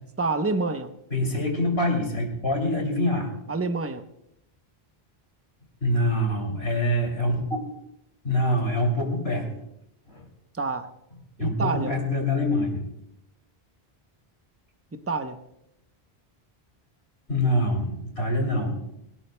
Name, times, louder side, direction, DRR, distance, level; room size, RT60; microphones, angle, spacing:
voice 1, 0.2-0.9 3.5-4.0 10.6-10.9 11.4-11.9 14.9-15.4, right 3 dB, 15° right, 8 dB, 0.7 m, -27 dB
voice 2, 1.1-3.3 5.8-7.6 8.2-9.5 10.1-10.2 11.4-12.8 17.3-18.8, left 1 dB, 80° left, 2 dB, 3.1 m, -25 dB
19.5 x 17.5 x 2.2 m, 0.80 s
omnidirectional pair, 1.0 m